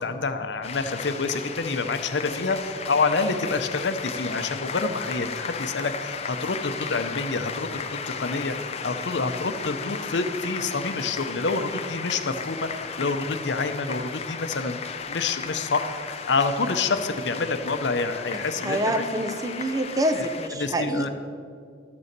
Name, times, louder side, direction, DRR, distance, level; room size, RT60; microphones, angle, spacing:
voice 1, 0.0-12.7 13.0-14.8 15.1-19.0 20.2-20.3 20.6-21.1, left 3 dB, 75° left, 9 dB, 0.7 m, -27 dB
sound 1, 0.6-20.5, left 5 dB, 35° left, 0.5 m, -35 dB
voice 2, 18.6-21.1, right 1 dB, 20° right, 7 dB, 0.6 m, -26 dB
12.5 x 7.0 x 6.7 m, 2.3 s
head